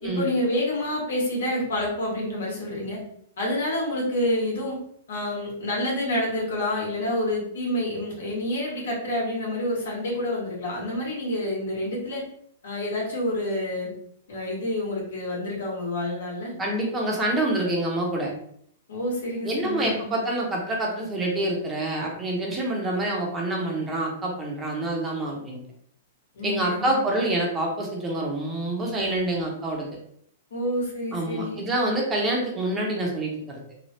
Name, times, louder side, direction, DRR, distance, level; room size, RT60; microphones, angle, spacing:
voice 1, 0.0-3.0 3.4-4.8 5.1-12.2 12.6-13.9 14.3-16.5 18.9-20.1 26.3-27.0 30.5-31.6, left 1 dB, 85° left, -3 dB, 1.4 m, -28 dB
voice 2, 16.6-18.3 19.4-25.6 26.4-29.9 31.1-33.6, right 1 dB, 15° right, -1 dB, 0.6 m, -27 dB
3.2 x 2.2 x 2.7 m, 0.67 s
hypercardioid pair, 155°, 0 cm